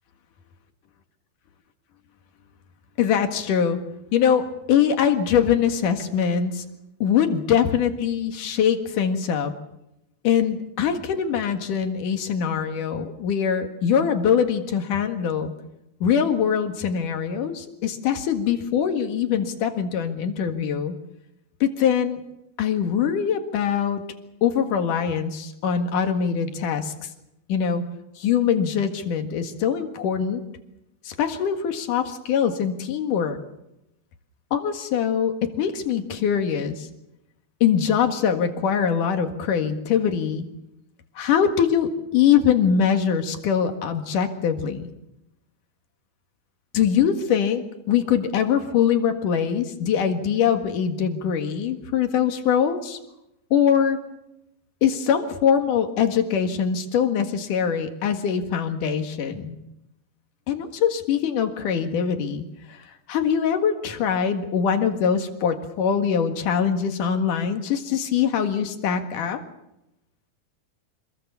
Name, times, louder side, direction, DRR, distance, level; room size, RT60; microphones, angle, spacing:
voice 1, 3.0-3.8 4.1-6.6 7.0-9.5 10.2-15.5 16.0-20.9 21.6-22.2 22.6-24.0 24.4-26.9 27.5-27.8 28.2-30.4 31.0-33.4 34.5-36.9 37.6-40.5 41.2-44.9 46.7-53.0 53.5-54.0 54.8-59.6 60.5-62.8 63.1-69.4, left 8 dB, 80° left, 6 dB, 3.4 m, -23 dB
26.0 x 21.5 x 7.2 m, 0.88 s
omnidirectional pair, 3.6 m